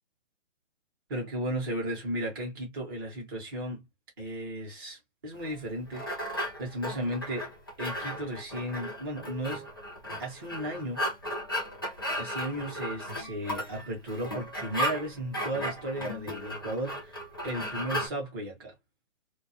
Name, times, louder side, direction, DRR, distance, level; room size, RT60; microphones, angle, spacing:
voice 1, 1.1-3.8 4.2-7.5 7.8-9.7 10.2-11.0 12.2-18.7, right 1 dB, 20° right, 0.7 m, -35 dB
sound 1, 5.4-18.1, equal, 20° left, 0.4 m, -35 dB
2.3 x 2.2 x 2.5 m
hypercardioid pair, 160°, 37 cm